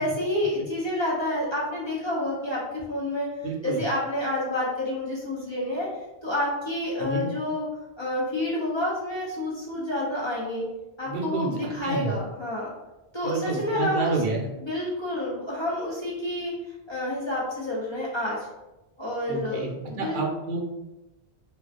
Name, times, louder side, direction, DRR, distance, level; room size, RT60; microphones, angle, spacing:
voice 1, 0.0-3.3 3.6-5.9 6.2-7.7 8.0-10.7 11.0-12.7 13.1-14.1 14.6-16.5 16.9-18.5 19.0-20.2, left 1 dB, 45° left, -6 dB, 0.3 m, -29 dB
voice 2, 3.4-3.8 7.0-7.3 11.0-12.1 13.2-14.5 19.3-20.6, right 3 dB, 65° right, 0 dB, 0.7 m, -29 dB
2.3 x 2.2 x 2.4 m, 1.0 s
omnidirectional pair, 1.1 m